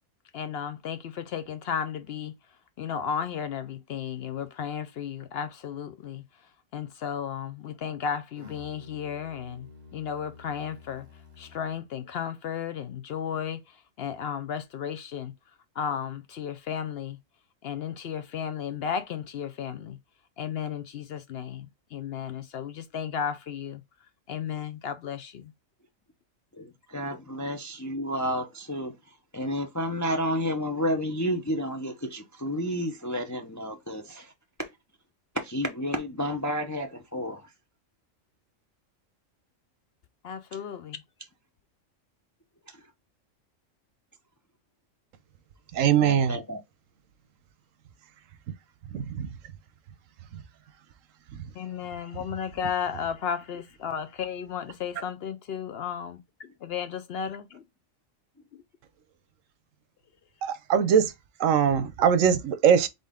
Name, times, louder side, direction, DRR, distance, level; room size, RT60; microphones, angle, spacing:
voice 1, 0.3-2.3 2.8-6.2 6.7-9.7 9.9-11.1 11.4-15.3 15.8-17.2 17.6-20.0 20.4-23.8 24.3-25.5 27.1-27.2 40.2-41.0 51.5-57.6, left 8 dB, 65° left, 0.7 m, -34 dB
Musical instrument, 8.4-11.9, left 3 dB, 35° right, 1.0 m, -50 dB
voice 2, 26.5-28.9 29.3-34.3 34.6-34.7 35.3-37.5 42.7-42.8 46.0-46.6, equal, 30° left, 0.3 m, -31 dB
voice 3, 45.7-46.4 48.9-49.3 60.4-61.1 61.4-62.9, right 8 dB, 85° right, 1.1 m, -22 dB
3.9 x 3.8 x 3.5 m
omnidirectional pair, 1.3 m